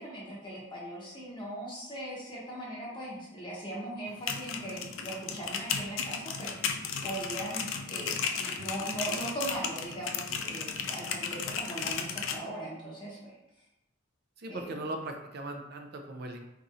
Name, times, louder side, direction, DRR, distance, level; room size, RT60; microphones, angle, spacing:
voice 1, 0.0-13.2 14.5-14.7, right 1 dB, 25° left, -5 dB, 0.7 m, -39 dB
sound 1, 4.1-12.4, left 6 dB, 75° left, 0.4 m, -35 dB
voice 2, 14.4-16.4, right 2 dB, 50° right, 4 dB, 0.4 m, -39 dB
4.1 x 2.6 x 2.4 m, 0.91 s
head